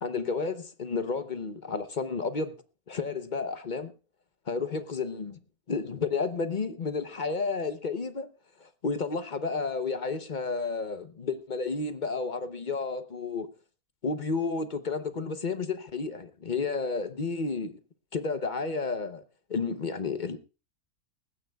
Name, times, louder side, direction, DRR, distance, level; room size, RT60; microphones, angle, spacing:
voice 1, 0.0-2.6 2.9-3.9 4.5-5.4 5.7-8.3 8.6-13.5 14.0-17.8 18.1-19.2 19.5-20.4, left 4 dB, 40° left, 0.8 m, -31 dB
19.5 x 15.5 x 2.3 m
omnidirectional pair, 1.6 m